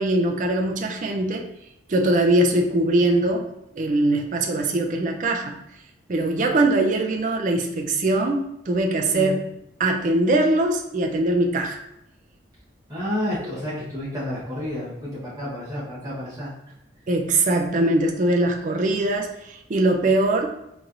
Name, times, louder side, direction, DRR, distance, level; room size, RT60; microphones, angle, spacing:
voice 1, 0.0-1.5 1.9-3.5 3.8-5.6 6.1-9.4 9.8-11.8 17.1-20.5, right 2 dB, 40° right, 2 dB, 0.4 m, -21 dB
voice 2, 12.9-16.5, left 1 dB, 20° right, -9 dB, 1.1 m, -30 dB
4.1 x 3.1 x 2.5 m, 0.83 s
head